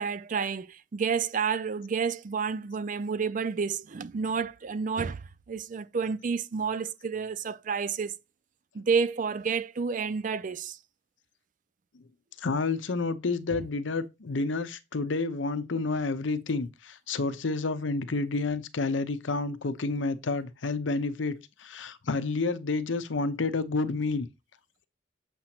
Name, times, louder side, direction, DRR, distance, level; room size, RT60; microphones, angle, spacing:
voice 1, 0.0-8.1 8.7-10.8, right 5 dB, 40° right, 0.4 m, -30 dB
voice 2, 12.4-24.3, left 3 dB, 75° left, 0.7 m, -30 dB
7.3 x 2.9 x 5.9 m
head